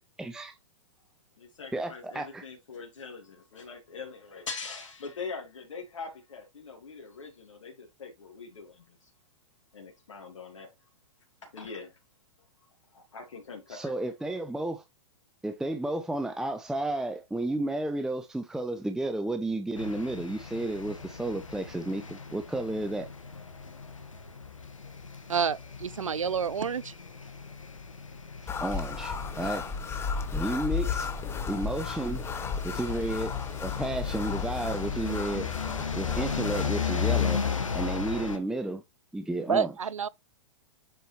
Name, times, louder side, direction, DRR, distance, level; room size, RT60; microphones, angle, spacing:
voice 1, 0.2-0.6 1.7-2.4 13.7-14.8 15.4-23.1 28.4-29.7 30.3-31.1 31.5-32.2 32.6-33.3 33.6-35.5 36.0-37.4 37.7-38.8 39.1-39.7, right 2 dB, 5° right, 0.6 m, -32 dB
voice 2, 1.4-9.1 9.7-10.7 11.4-11.9 12.9-13.9, left 4 dB, 75° left, 2.0 m, -42 dB
sound 1, 19.8-38.4, left 7 dB, 90° left, 1.3 m, -36 dB
voice 3, 25.3-26.9 39.5-40.1, right 6 dB, 90° right, 0.5 m, -28 dB
sound 2, 28.5-36.7, left 5 dB, 15° left, 0.9 m, -34 dB
7.7 x 4.9 x 3.1 m
hypercardioid pair, 110°, 16 cm